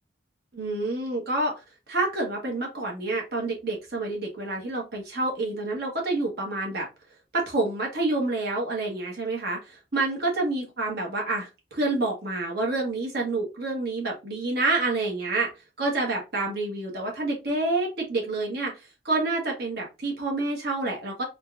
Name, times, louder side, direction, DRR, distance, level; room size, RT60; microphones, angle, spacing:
voice 1, 0.5-1.5 1.9-6.9 7.3-15.5 15.8-21.2, right 2 dB, 60° right, -1 dB, 1.2 m, -28 dB
3.9 x 2.3 x 2.4 m, 0.27 s
head